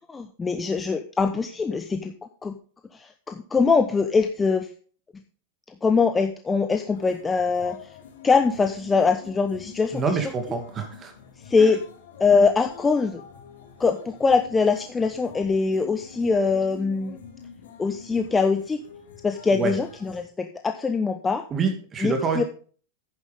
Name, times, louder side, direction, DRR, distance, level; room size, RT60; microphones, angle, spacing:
voice 1, 0.1-2.1 2.4-2.5 3.3-4.7 5.8-7.8 8.2-10.2 11.5-11.8 12.2-13.2 13.8-17.2 17.8-18.8 19.2-21.4 22.0-22.4, left 4 dB, 15° left, 7 dB, 0.9 m, -22 dB
sound 1, 6.9-20.3, left 7 dB, 80° left, 3.7 m, -46 dB
voice 2, 9.9-11.1 11.6-11.7 19.5-19.7 21.5-22.4, right 5 dB, 30° right, 5 dB, 2.5 m, -26 dB
10.5 x 9.5 x 3.6 m, 0.43 s
hypercardioid pair, 110°, 0 cm